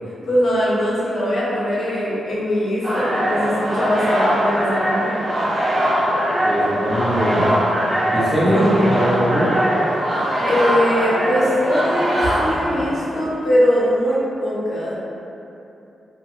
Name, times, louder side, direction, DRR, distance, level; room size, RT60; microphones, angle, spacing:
voice 1, 0.2-5.2 8.5-8.9 10.4-14.9, equal, 55° left, -8 dB, 0.7 m, -21 dB
sound 1, 2.8-13.3, equal, 75° right, 1.0 m, -21 dB
voice 2, 6.5-7.5 8.1-9.6, equal, ahead, -8 dB, 0.4 m, -20 dB
2.8 x 2.2 x 2.8 m, 2.8 s
wide cardioid pair, 165°, 0 cm